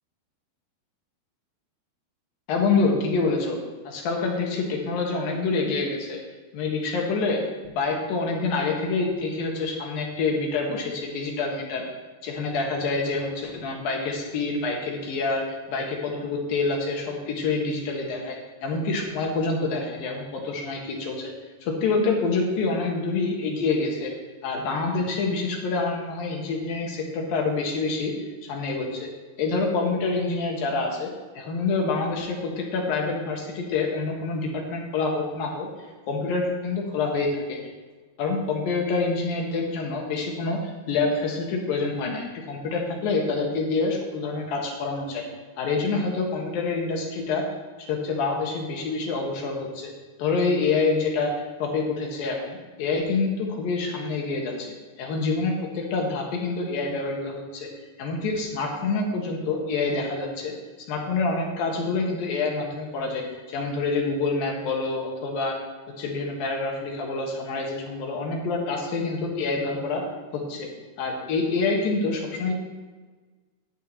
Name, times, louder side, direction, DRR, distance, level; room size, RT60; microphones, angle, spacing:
voice 1, 2.5-3.6 3.8-6.2 6.5-11.8 12.2-18.4 18.6-21.3 21.6-24.1 24.4-28.1 28.4-29.1 29.4-31.1 31.4-35.7 36.1-37.6 38.2-45.3 45.6-47.4 47.8-49.9 50.2-51.3 51.6-57.7 58.0-60.5 60.8-65.6 66.0-70.0 70.3-70.7 71.0-72.5, left 3 dB, 60° left, 0 dB, 3.0 m, -27 dB
14.5 x 10.5 x 3.1 m, 1.4 s
omnidirectional pair, 5.1 m